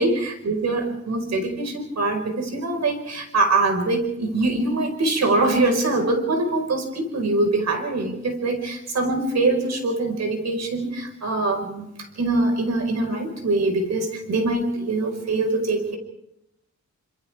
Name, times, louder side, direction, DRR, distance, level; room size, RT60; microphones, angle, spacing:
voice 1, 0.0-16.0, right 2 dB, 65° right, 5 dB, 5.1 m, -23 dB
29.5 x 26.0 x 3.6 m, 0.81 s
wide cardioid pair, 145°, 30 cm